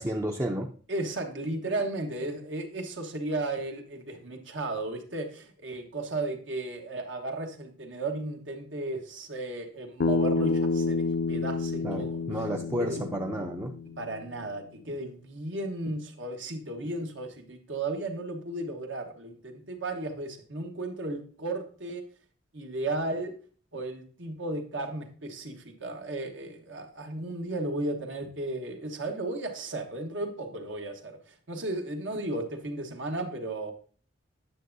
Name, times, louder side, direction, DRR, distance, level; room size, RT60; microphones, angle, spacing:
voice 1, 0.0-0.7 11.8-13.8, right 1 dB, 15° right, 2 dB, 0.5 m, -31 dB
voice 2, 0.9-12.2 12.9-13.0 14.0-22.0 22.5-23.3 23.7-33.7, right 2 dB, 75° right, 4 dB, 1.2 m, -34 dB
Bass guitar, 10.0-14.3, left 3 dB, 65° left, 0.5 m, -29 dB
9.3 x 6.8 x 2.6 m, 0.41 s
head